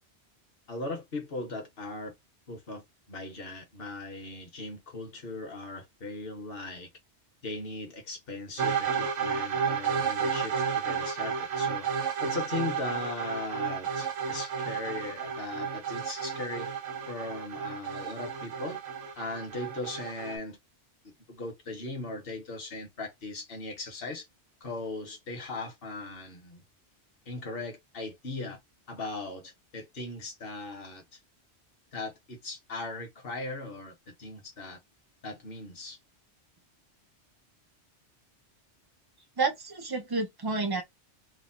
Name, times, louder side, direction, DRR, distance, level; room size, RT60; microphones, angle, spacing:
voice 1, 0.7-2.1 2.5-6.9 7.4-11.9 12.2-16.7 17.1-18.8 19.2-20.6 21.3-24.3 24.6-26.6 27.3-28.6 28.9-31.2 31.9-34.8 35.2-36.0, left 2 dB, 55° left, 1.1 m, -38 dB
sound 1, 8.6-20.4, right 6 dB, 90° right, 1.1 m, -32 dB
voice 2, 39.4-40.8, right 3 dB, 30° right, 0.4 m, -30 dB
3.2 x 2.1 x 2.5 m
omnidirectional pair, 1.2 m